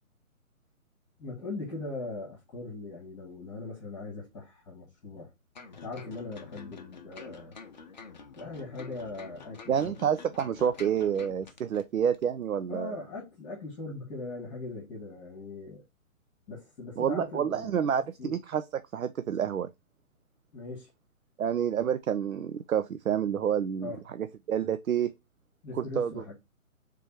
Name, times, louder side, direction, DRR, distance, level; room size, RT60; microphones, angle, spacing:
voice 1, 1.2-5.3 5.8-7.6 8.3-9.9 12.7-15.8 16.5-18.3 20.5-20.9 23.8-24.0 25.6-26.3, left 3 dB, 20° left, 1.3 m, -40 dB
sound 1, 5.5-11.8 12.1-12.3, left 5 dB, 35° left, 0.6 m, -48 dB
voice 2, 9.7-13.0 17.0-19.7 21.4-25.1 25.8-26.1, right 8 dB, 75° right, 0.5 m, -29 dB
3.4 x 3.4 x 4.3 m
figure-of-eight pair, 135°, 42 cm